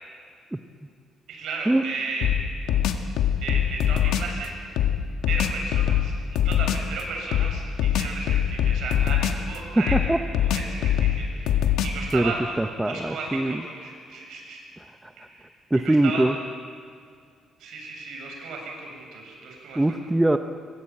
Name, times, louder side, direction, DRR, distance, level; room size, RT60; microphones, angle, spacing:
voice 1, 1.3-2.3 3.4-4.5 5.3-10.0 10.4-12.6 12.9-14.6 15.3-15.4 15.7-16.2 17.6-19.8, right 3 dB, 65° right, 1 dB, 7.5 m, -34 dB
sound 1, 2.2-4.3 4.8-6.9 7.3-9.6 9.9-12.1, left 10 dB, 85° left, 1.7 m, -23 dB
voice 2, 9.8-10.2 12.1-13.6 14.8-15.1 15.7-16.4 19.8-20.4, right 1 dB, 5° right, 7 dB, 0.7 m, -23 dB
25.5 x 22.5 x 8.9 m, 2.2 s
cardioid pair, 175°, 0 cm